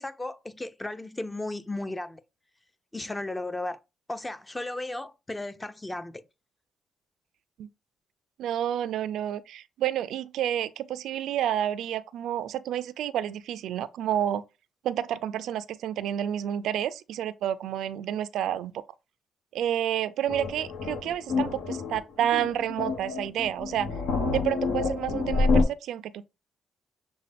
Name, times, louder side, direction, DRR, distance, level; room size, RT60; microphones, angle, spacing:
voice 1, 0.0-2.2 2.9-3.8 4.1-6.2 22.3-22.4, left 2 dB, 15° left, 0.5 m, -35 dB
voice 2, 8.4-14.4 14.8-18.8 19.5-23.9 24.3-26.3, right 10 dB, 85° right, 0.3 m, -30 dB
sound 1, 20.3-25.6, left 4 dB, 75° left, 0.9 m, -28 dB
6.5 x 2.2 x 3.3 m
cardioid pair, 100°, 0 cm